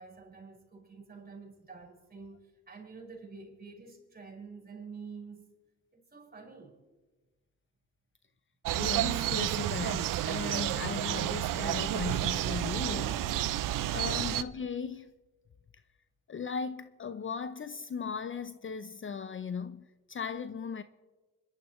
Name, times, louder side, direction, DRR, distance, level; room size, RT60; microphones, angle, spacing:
voice 1, 0.0-5.5 5.9-6.8, right 4 dB, 30° right, 5.4 m, -48 dB
sound 1, 8.6-14.4, right 13 dB, 70° right, 0.7 m, -30 dB
voice 2, 8.8-13.3 13.9-15.1 16.3-20.8, left 6 dB, 35° left, 0.6 m, -37 dB
26.5 x 12.5 x 3.1 m
supercardioid pair, 60°, 34 cm